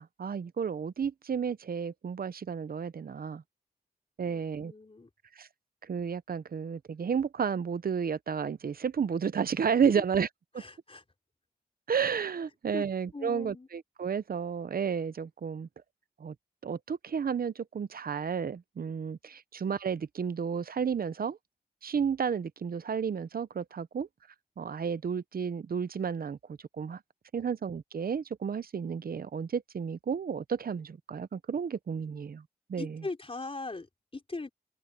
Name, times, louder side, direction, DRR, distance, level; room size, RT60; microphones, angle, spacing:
voice 1, 0.0-3.4 4.2-4.7 5.4-5.5 5.8-10.3 10.5-10.6 11.9-15.7 16.2-16.3 16.6-21.4 21.8-24.1 24.6-27.0 27.3-32.4 32.7-32.9, right 6 dB, 70° right, 0.8 m, -32 dB
voice 2, 4.2-5.1 9.8-10.0 10.6-11.0 12.7-12.8 13.1-13.7 32.8-34.5, left 3 dB, 35° left, 4.0 m, -40 dB
cardioid pair, 55°, 16 cm